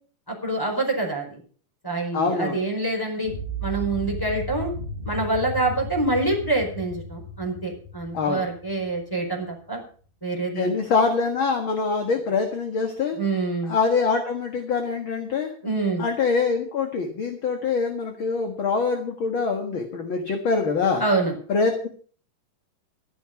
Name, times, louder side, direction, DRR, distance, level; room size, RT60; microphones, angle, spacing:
voice 1, 0.3-1.4 1.8-3.3 3.6-4.7 5.0-9.8 10.2-10.7 13.2-13.7 15.6-16.0 21.0-21.3, right 2 dB, 5° left, 1 dB, 4.5 m, -26 dB
voice 2, 2.1-2.6 8.1-8.5 10.6-13.2 13.7-15.5 16.0-21.0 21.5-21.9, left 4 dB, 45° left, 5 dB, 2.1 m, -24 dB
sound 1, 3.2-9.3, equal, 15° right, 3.8 m, -35 dB
13.0 x 12.5 x 5.9 m, 0.43 s
omnidirectional pair, 3.6 m